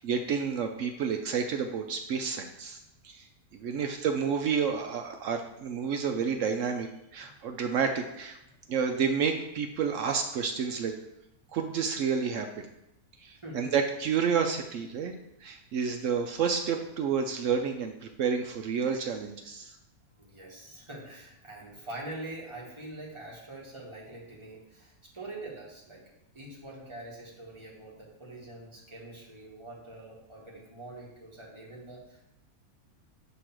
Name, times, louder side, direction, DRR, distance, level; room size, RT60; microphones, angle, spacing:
voice 1, 0.0-2.8 3.0-3.3 3.5-8.4 8.7-10.9 11.5-12.7 13.2-15.1 15.4-19.7, right 6 dB, 70° right, 5 dB, 0.8 m, -30 dB
voice 2, 13.4-13.7 20.1-32.2, right 1 dB, 20° right, -5 dB, 1.5 m, -44 dB
6.4 x 3.0 x 5.9 m, 0.84 s
omnidirectional pair, 1.6 m